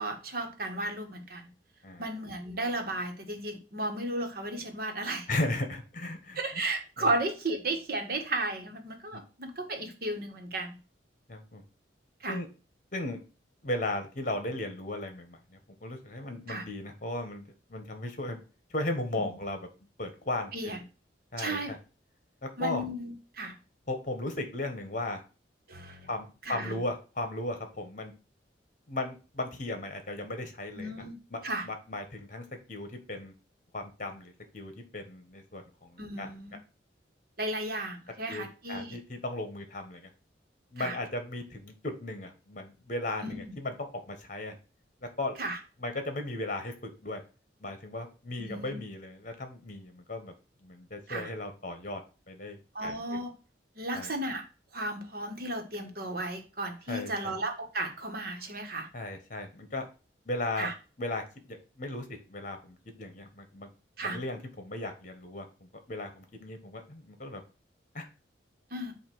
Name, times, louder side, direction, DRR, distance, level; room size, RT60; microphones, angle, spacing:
voice 1, 0.0-1.5 2.0-5.3 6.3-10.8 12.2-12.4 16.5-16.6 19.2-19.4 20.5-20.8 21.4-21.7 22.6-23.5 25.7-26.1 26.4-26.8 30.7-31.1 31.4-31.7 36.0-36.6 37.4-39.0 40.8-41.0 43.2-43.5 45.4-45.6 48.4-48.8 51.1-51.3 52.7-53.3 53.7-54.4 54.7-58.9 60.6-60.7 64.0-64.2 68.7-68.9, right 2 dB, 55° right, 4 dB, 1.5 m, -34 dB
voice 2, 5.3-6.4 7.0-7.1 9.1-9.2 11.3-11.6 12.3-12.5 12.9-13.2 13.6-17.4 17.7-18.4 18.7-19.7 20.0-20.8 21.3-21.8 22.4-22.8 23.9-25.2 26.1-28.1 28.9-30.9 31.3-33.3 33.7-36.3 38.3-40.1 40.7-43.7 44.1-44.6 45.2-45.4 45.8-47.2 47.6-50.3 50.6-52.0 52.3-53.2 53.9-54.1 56.9-57.3 58.9-59.9 60.3-60.7 61.0-63.7 64.0-67.4 67.9-68.1, left 2 dB, 45° left, 6 dB, 1.5 m, -36 dB
8.3 x 2.9 x 6.2 m, 0.33 s
head